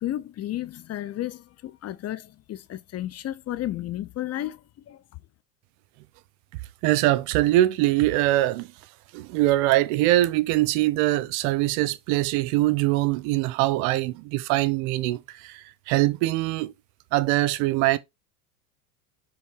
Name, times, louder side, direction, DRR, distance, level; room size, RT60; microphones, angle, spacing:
voice 1, 0.0-4.6 4.9-5.0, left 13 dB, 30° left, 0.7 m, -32 dB
voice 2, 6.8-8.7 9.1-16.7 17.1-18.0, right 16 dB, 60° right, 0.8 m, -23 dB
7.2 x 3.7 x 3.5 m
hypercardioid pair, 90°, 49 cm